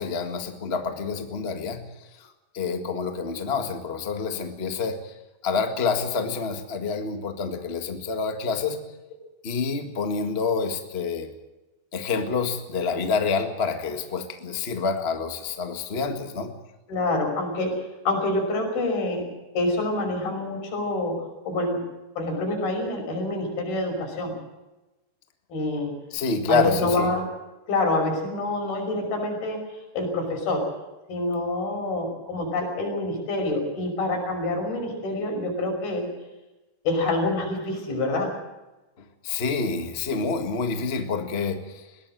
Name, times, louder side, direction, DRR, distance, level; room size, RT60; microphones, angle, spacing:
voice 1, 0.0-1.9 2.2-2.3 2.5-5.1 5.4-8.8 9.4-11.3 11.9-16.5 26.1-27.1 39.2-41.8, left 4 dB, 40° left, 6 dB, 0.8 m, -27 dB
voice 2, 16.9-17.7 18.1-19.2 19.5-21.1 21.5-21.8 22.2-24.3 25.5-25.9 26.5-27.3 27.7-29.6 29.9-30.6 31.1-36.1 36.8-38.3, left 2 dB, 75° left, 3 dB, 7.5 m, -26 dB
21.5 x 17.0 x 7.8 m, 1.1 s
omnidirectional pair, 4.4 m